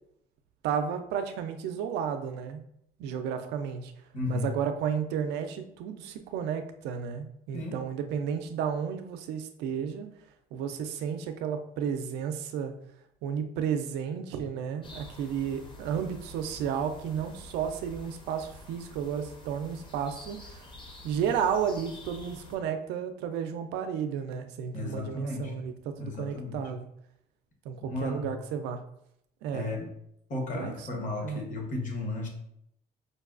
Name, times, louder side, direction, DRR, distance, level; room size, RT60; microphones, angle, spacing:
voice 1, 0.6-2.6 3.0-3.9 4.3-10.1 10.5-12.8 13.2-20.6 21.0-26.9 27.7-28.8 29.4-29.7 30.5-31.4, right 7 dB, 85° right, 8 dB, 0.4 m, -32 dB
voice 2, 4.1-4.5 7.5-7.8 24.7-25.6 26.0-26.6 27.8-28.3 29.5-29.9 30.3-32.3, left 2 dB, 50° left, 1 dB, 1.1 m, -34 dB
sound 1, 14.8-22.6, left 1 dB, 30° left, 0.7 m, -48 dB
5.1 x 2.3 x 2.4 m, 0.74 s
cardioid pair, 110°, 17 cm